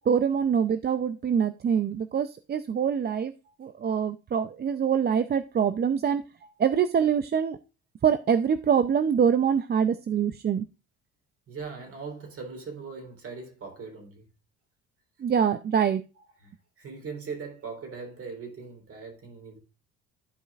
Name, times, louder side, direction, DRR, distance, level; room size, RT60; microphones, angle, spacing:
voice 1, 0.1-3.3 3.6-6.2 6.6-7.6 8.0-10.7 15.2-16.0, right 7 dB, 35° right, 0.5 m, -24 dB
voice 2, 11.5-14.3 16.4-19.6, right 5 dB, 50° right, 3.6 m, -40 dB
13.5 x 4.9 x 2.4 m
supercardioid pair, 85°, 29 cm